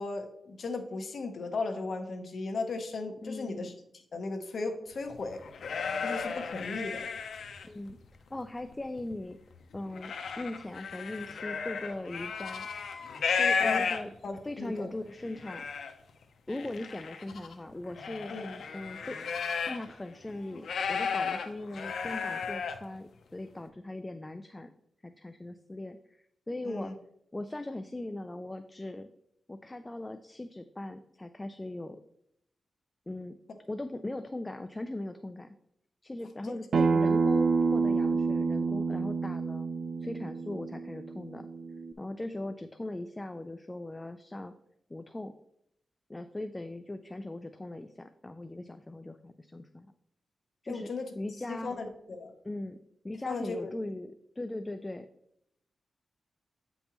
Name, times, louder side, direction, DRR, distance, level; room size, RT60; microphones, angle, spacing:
voice 1, 0.0-3.7 4.1-5.4 6.0-7.1 13.6-13.8 14.2-14.9 18.3-18.6 26.6-26.9 36.4-36.6 50.7-51.1 51.5-52.3 53.2-53.7, left 3 dB, 60° left, 5 dB, 1.0 m, -36 dB
voice 2, 3.2-3.7 7.6-8.0 8.3-9.4 9.7-12.7 13.4-14.1 14.4-15.7 16.5-18.3 18.7-19.3 19.6-24.7 25.0-26.9 27.3-29.1 29.5-32.0 33.1-33.4 33.7-35.5 36.0-39.7 40.0-41.5 42.0-44.5 44.9-45.3 46.1-49.9 50.6-51.7 52.4-52.8 53.0-55.1, left 2 dB, 15° left, 9 dB, 0.3 m, -39 dB
sound 1, 5.1-7.9 8.4-9.1 9.5-14.4 14.9-15.0 15.2-15.9 16.5-19.9 20.2-22.8, left 5 dB, 80° left, 0.6 m, -34 dB
Acoustic guitar, 36.7-41.9, right 4 dB, 65° right, 0.4 m, -28 dB
8.3 x 5.3 x 3.0 m, 0.74 s
wide cardioid pair, 125°, 0 cm